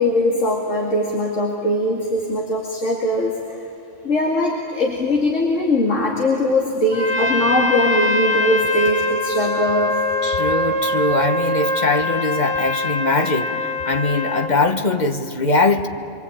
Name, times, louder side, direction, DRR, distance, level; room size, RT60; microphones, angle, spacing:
voice 1, 0.0-3.3 4.0-10.0, left 1 dB, 80° left, -2 dB, 2.7 m, -20 dB
Trumpet, 6.9-14.6, left 1 dB, 5° left, 1.4 m, -23 dB
voice 2, 10.2-15.9, left 3 dB, 40° left, 6 dB, 1.4 m, -21 dB
26.0 x 23.5 x 8.8 m, 2.9 s
omnidirectional pair, 1.3 m